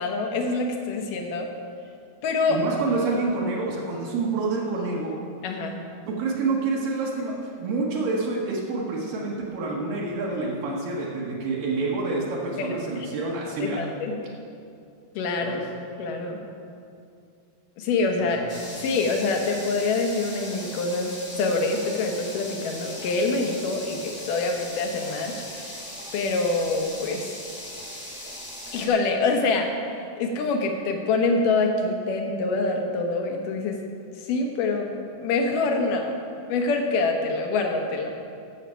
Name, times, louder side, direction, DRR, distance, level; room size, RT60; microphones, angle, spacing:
voice 1, 0.0-1.5 2.2-2.6 5.4-5.8 12.6-13.1 13.6-14.2 15.1-15.6 16.0-16.4 17.8-18.5 18.8-25.8 26.1-27.3 28.7-33.8 34.1-34.9 35.2-36.1 36.5-38.1, left 3 dB, 70° left, 2 dB, 2.7 m, -25 dB
voice 2, 2.5-5.2 6.1-13.8 15.4-15.6 18.2-18.3, right 3 dB, 75° right, -5 dB, 3.1 m, -27 dB
sound 1, 18.5-28.9, left 1 dB, 15° left, 1.1 m, -39 dB
14.5 x 7.4 x 5.7 m, 2.4 s
omnidirectional pair, 4.0 m